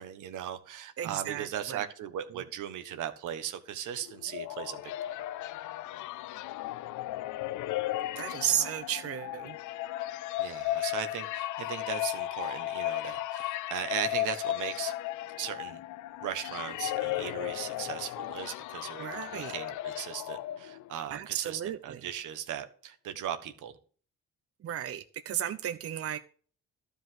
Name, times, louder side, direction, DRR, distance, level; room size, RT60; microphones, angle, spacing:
voice 1, 0.0-4.9 8.4-8.7 10.4-14.9 15.4-15.8 16.2-23.7, right 10 dB, 85° right, 1.4 m, -38 dB
voice 2, 1.0-1.8 2.3-2.4 8.2-9.6 19.0-19.5 21.1-22.0 24.6-26.2, right 10 dB, 50° right, 0.8 m, -34 dB
sound 1, 4.0-21.0, left 15 dB, 80° left, 0.5 m, -35 dB
12.0 x 5.3 x 7.7 m
cardioid pair, 90°, 30 cm